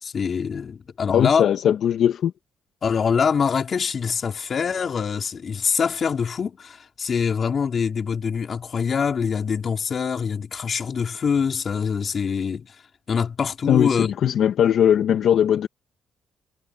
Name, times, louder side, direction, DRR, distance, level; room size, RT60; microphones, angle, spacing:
voice 1, 0.0-1.5 2.8-12.7 13.1-14.1, left 6 dB, 40° left, 4.6 m, -24 dB
voice 2, 1.1-2.3 13.7-15.7, left 9 dB, 65° left, 1.6 m, -19 dB
cardioid pair, 125°, 0 cm